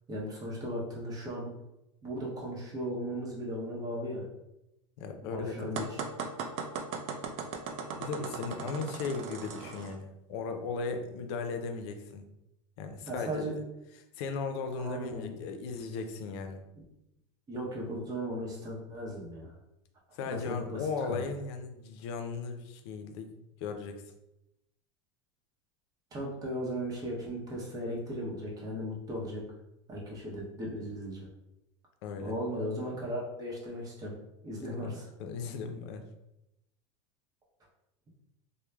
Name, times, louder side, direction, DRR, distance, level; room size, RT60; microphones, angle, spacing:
voice 1, 0.1-1.5 2.0-4.2 5.2-6.0 13.1-13.5 14.8-15.4 17.5-19.5 20.3-21.2 26.1-29.4 29.9-31.3 32.2-34.1 34.4-35.1, equal, 25° right, -3 dB, 0.8 m, -37 dB
voice 2, 5.0-5.7 8.0-12.2 12.8-13.5 14.2-16.6 20.1-23.3 23.6-24.0 32.0-32.3 34.7-36.0, left 4 dB, 70° left, 6 dB, 0.4 m, -37 dB
sound 1, 5.8-10.0, right 5 dB, 50° right, 0.4 m, -38 dB
3.0 x 2.0 x 2.3 m, 0.87 s
supercardioid pair, 140°, 15 cm